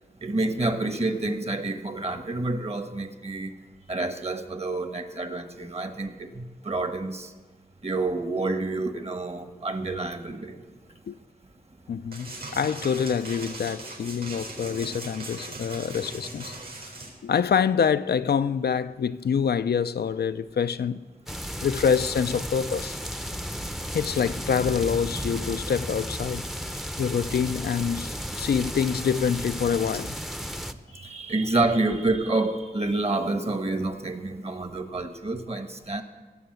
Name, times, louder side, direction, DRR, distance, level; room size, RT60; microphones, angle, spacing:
voice 1, 0.2-3.5 3.9-7.3 7.8-10.6 30.9-36.0, right 2 dB, 40° right, 1.2 m, -28 dB
voice 2, 11.9-16.5 17.2-21.1 21.6-23.0 23.9-26.5 27.0-30.2, left 7 dB, 90° left, 0.4 m, -26 dB
sound 1, 12.1-17.1, right 2 dB, 75° right, 4.0 m, -39 dB
sound 2, 21.3-30.7, equal, ahead, 0.6 m, -34 dB
16.5 x 7.1 x 7.8 m
wide cardioid pair, 80°, 16 cm